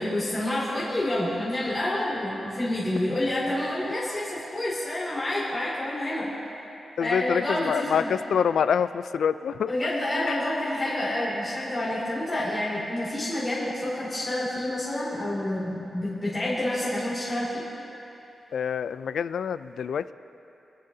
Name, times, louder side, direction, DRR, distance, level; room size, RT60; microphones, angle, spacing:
voice 1, 0.0-6.3 7.0-8.1 9.7-17.6, left 1 dB, 20° left, -9 dB, 2.5 m, -28 dB
voice 2, 7.0-9.7 10.3-10.4 18.5-20.1, left 7 dB, 85° left, 14 dB, 0.3 m, -26 dB
25.5 x 10.5 x 2.8 m, 2.9 s
wide cardioid pair, 160°, 0 cm